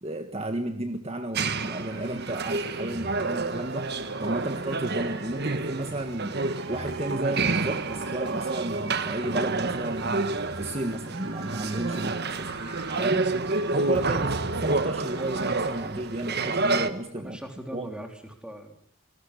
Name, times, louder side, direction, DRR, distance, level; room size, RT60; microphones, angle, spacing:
voice 1, 0.0-3.9 4.2-6.4 6.7-12.1 12.4-12.5 13.0-13.3 13.7-17.4 17.7-17.9, right 1 dB, 30° right, 6 dB, 1.6 m, -32 dB
sound 1, 1.4-16.9, right 3 dB, 50° right, 1.4 m, -29 dB
sound 2, 1.5-15.8, right 3 dB, 70° right, 5.0 m, -43 dB
voice 2, 17.2-18.8, right 1 dB, 5° right, 3 dB, 3.9 m, -40 dB
29.5 x 19.5 x 8.4 m, 0.65 s
head